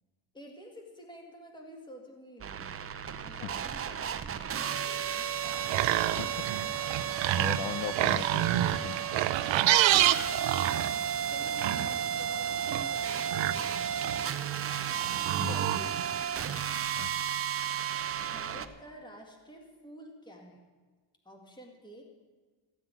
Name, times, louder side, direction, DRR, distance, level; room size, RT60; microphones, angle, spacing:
voice 1, 0.3-2.8 3.1-5.4 9.9-14.6 15.6-15.9 17.1-17.4 18.2-20.6 21.2-22.0, equal, 10° left, 1 dB, 1.9 m, -51 dB
sound 1, 2.4-18.7, right 9 dB, 30° right, 0.5 m, -33 dB
sound 2, 5.4-16.2, right 13 dB, 85° right, 0.7 m, -30 dB
voice 2, 7.4-9.0 15.4-15.6 17.0-17.1, left 11 dB, 90° left, 17 dB, 0.7 m, -38 dB
15.0 x 7.4 x 9.3 m, 1.4 s
cardioid pair, 170°, 44 cm